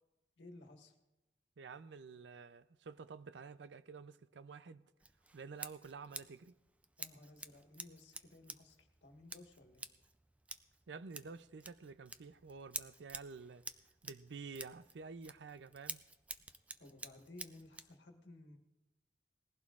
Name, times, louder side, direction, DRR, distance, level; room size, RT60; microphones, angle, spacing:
voice 1, 0.4-0.9 6.1-6.2 7.0-9.9 16.8-18.6, left 2 dB, 80° left, 1.5 m, -57 dB
voice 2, 1.6-4.8 5.3-6.5 10.9-13.6 14.0-16.0, right 4 dB, 75° right, 0.5 m, -50 dB
Scissors, 5.0-18.0, right 3 dB, 10° right, 0.3 m, -51 dB
19.5 x 15.5 x 2.5 m
head